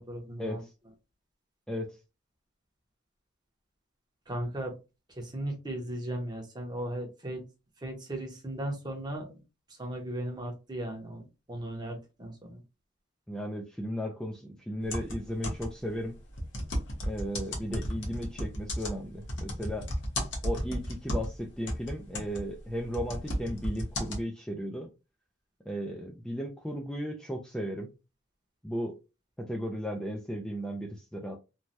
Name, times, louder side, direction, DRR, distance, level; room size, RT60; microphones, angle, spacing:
voice 1, 0.1-0.6 4.3-4.7 5.1-7.4 7.8-9.4 9.8-11.2 11.5-12.6, right 1 dB, 20° right, 2 dB, 0.8 m, -36 dB
voice 2, 13.3-16.2 17.0-19.9 20.4-24.9 25.7-27.9 28.6-29.0 29.4-31.4, equal, 5° left, 0 dB, 0.4 m, -35 dB
sound 1, 14.8-15.9 16.3-21.4 21.7-24.2, equal, 65° left, 1.0 m, -34 dB
3.1 x 2.2 x 2.6 m, 0.27 s
head